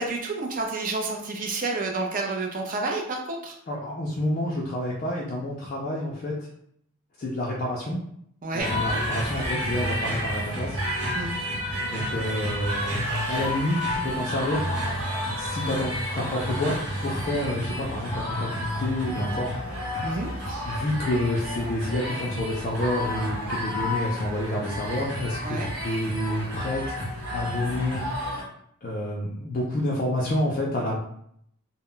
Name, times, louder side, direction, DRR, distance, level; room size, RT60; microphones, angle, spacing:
voice 1, 0.0-3.5 8.4-8.7 11.1-11.3 20.0-20.3 25.4-25.7, right 3 dB, 40° right, 1 dB, 0.5 m, -29 dB
voice 2, 3.7-6.5 7.2-8.0 8.5-10.8 11.8-13.0 13.3-14.7 15.3-16.7 17.0-19.6 20.7-26.9 27.3-28.0 28.8-31.0, left 1 dB, 35° left, -5 dB, 0.4 m, -28 dB
sound 1, 8.6-28.4, equal, 85° right, 0.9 m, -30 dB
2.1 x 2.0 x 3.7 m, 0.70 s
head